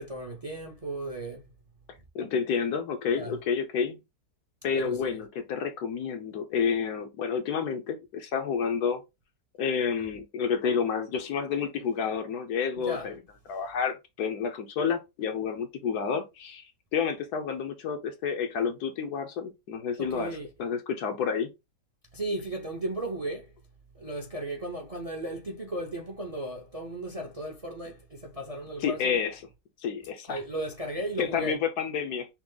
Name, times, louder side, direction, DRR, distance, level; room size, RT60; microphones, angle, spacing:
voice 1, 0.0-1.4 3.1-3.4 4.7-5.2 12.8-13.1 20.0-20.5 22.1-23.5 23.9-29.2 30.3-31.6, right 1 dB, 30° right, 0.6 m, -35 dB
voice 2, 2.1-4.0 4.6-9.0 9.6-13.2 13.5-16.7 16.9-21.5 28.8-29.4 29.8-30.4 31.2-32.3, left 6 dB, 70° left, 1.3 m, -29 dB
6.0 x 2.0 x 3.8 m
omnidirectional pair, 1.8 m